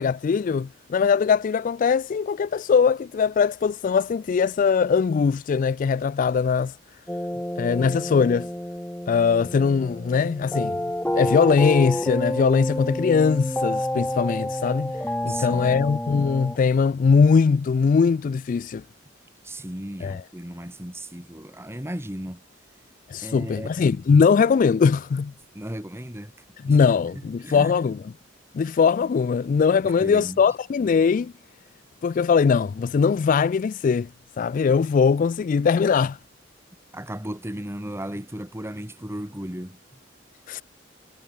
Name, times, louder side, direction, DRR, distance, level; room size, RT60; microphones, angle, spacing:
voice 1, 0.0-6.7 7.6-8.5 9.1-10.8 11.1-14.9 15.2-18.8 20.0-20.2 23.1-25.3 26.6-28.0 28.5-31.3 32.0-34.1 34.4-36.2 40.5-40.6, left 5 dB, 45° left, 0.3 m, -21 dB
sound 1, 7.1-16.6, left 1 dB, 5° left, 2.1 m, -29 dB
voice 2, 15.3-15.8 19.4-22.4 23.2-23.8 25.5-26.3 26.7-26.8 27.1-27.7 29.8-30.4 36.9-40.0, right 1 dB, 15° right, 2.7 m, -36 dB
head